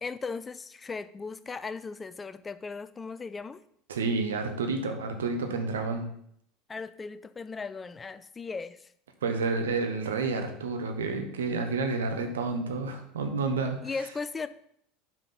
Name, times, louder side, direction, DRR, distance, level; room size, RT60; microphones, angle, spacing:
voice 1, 0.0-3.6 6.7-8.8 13.8-14.5, left 4 dB, 20° left, 13 dB, 0.5 m, -37 dB
voice 2, 3.9-6.1 9.2-13.8, right 4 dB, 80° right, 6 dB, 1.1 m, -30 dB
5.7 x 4.8 x 5.7 m, 0.69 s
hypercardioid pair, 75°, 0 cm